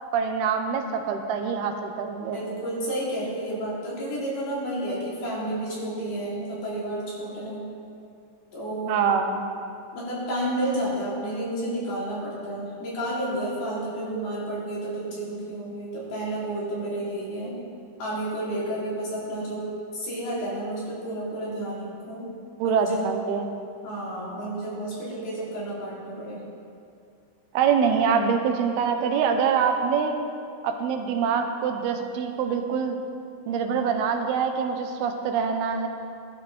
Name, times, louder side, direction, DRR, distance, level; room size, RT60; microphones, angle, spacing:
voice 1, 0.1-2.4 8.9-9.4 22.6-23.5 27.5-30.2 30.6-33.0 33.5-35.9, right 6 dB, 70° right, 5 dB, 2.8 m, -25 dB
voice 2, 2.3-7.7 8.5-9.0 9.9-17.6 18.0-22.3 22.6-23.1 23.8-26.4, right 1 dB, 60° left, -8 dB, 6.0 m, -31 dB
19.0 x 13.0 x 4.5 m, 2.5 s
omnidirectional pair, 5.1 m